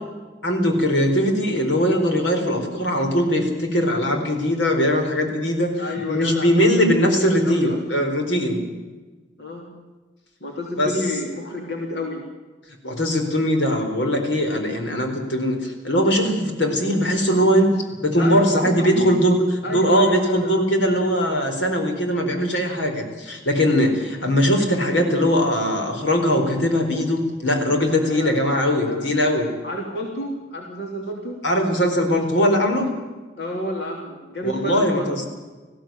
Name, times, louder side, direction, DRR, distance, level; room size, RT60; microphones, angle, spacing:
voice 1, 0.4-5.7 6.1-8.6 10.8-10.9 12.8-17.7 18.0-19.4 19.7-29.5 31.4-32.9 34.4-35.3, equal, 80° left, 4 dB, 4.3 m, -20 dB
voice 2, 5.8-8.0 9.4-9.7 10.4-12.2 18.2-19.1 19.6-20.5 27.9-29.1 29.6-31.4 33.4-35.1, left 1 dB, 65° left, 0 dB, 3.3 m, -30 dB
20.0 x 15.5 x 9.0 m, 1.3 s
head